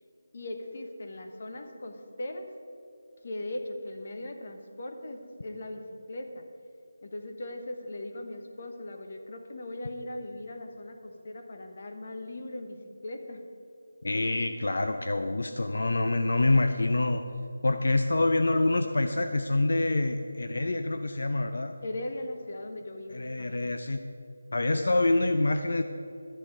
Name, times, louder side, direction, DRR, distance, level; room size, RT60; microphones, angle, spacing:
voice 1, 0.3-2.5 3.2-5.8 6.1-6.5 7.0-13.4 21.8-23.7, left 1 dB, 35° left, 5 dB, 1.0 m, -39 dB
voice 2, 14.0-17.2 17.6-21.7 23.1-24.0 24.5-25.8, left 2 dB, 60° left, 7 dB, 0.6 m, -26 dB
12.5 x 10.5 x 4.8 m, 2.6 s
figure-of-eight pair, 180°, 0 cm